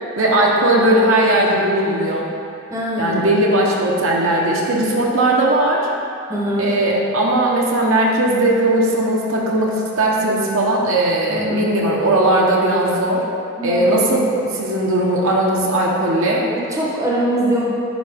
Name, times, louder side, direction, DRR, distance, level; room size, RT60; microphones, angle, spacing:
voice 1, 0.2-2.3 3.0-5.9 6.6-13.2 13.6-16.5, right 1 dB, 65° right, -3 dB, 1.1 m, -18 dB
voice 2, 2.7-3.3 6.3-6.7 11.3-11.6 13.6-14.1 16.5-17.6, right 1 dB, 15° right, -5 dB, 1.0 m, -22 dB
10.0 x 4.8 x 3.5 m, 2.5 s
head